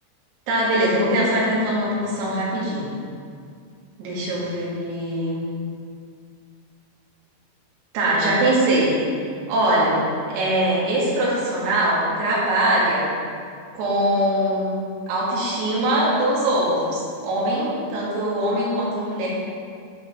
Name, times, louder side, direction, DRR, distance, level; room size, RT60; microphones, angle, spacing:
voice 1, 0.5-3.0 4.0-5.5 7.9-9.0 9.5-10.0 10.3-13.1 13.7-14.8 15.1-19.3, right 1 dB, 85° right, -6 dB, 5.1 m, -22 dB
13.0 x 5.1 x 5.9 m, 2.3 s
omnidirectional pair, 5.9 m